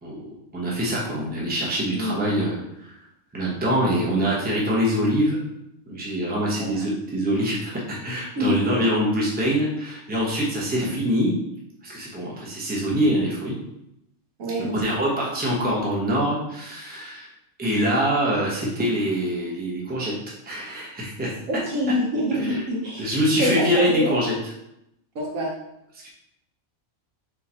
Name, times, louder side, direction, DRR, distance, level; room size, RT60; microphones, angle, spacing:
voice 1, 0.0-3.0 3.3-5.4 5.9-11.3 11.8-13.6 14.7-17.3 17.6-20.1 20.4-21.3 22.4-22.6 23.0-24.3 26.0-26.1, equal, 10° right, -5 dB, 0.8 m, -24 dB
voice 2, 8.4-8.9 14.4-14.8 21.5-23.1 23.4-24.2 25.1-25.5, equal, 65° right, -2 dB, 1.3 m, -25 dB
4.1 x 4.0 x 2.9 m, 0.82 s
omnidirectional pair, 1.5 m